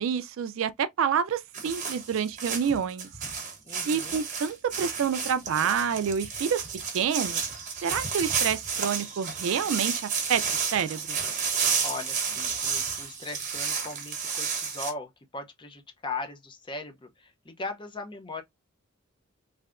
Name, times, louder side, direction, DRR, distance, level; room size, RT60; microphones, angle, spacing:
voice 1, 0.0-3.1 3.9-6.6 6.9-7.4 7.8-10.0 10.3-10.4 10.7-11.2, right 7 dB, 65° right, 0.3 m, -28 dB
sound 1, 1.5-14.9, right 6 dB, 35° right, 1.0 m, -31 dB
voice 2, 3.6-4.2 11.8-18.4, left 3 dB, 20° left, 0.5 m, -39 dB
3.3 x 2.7 x 2.4 m
head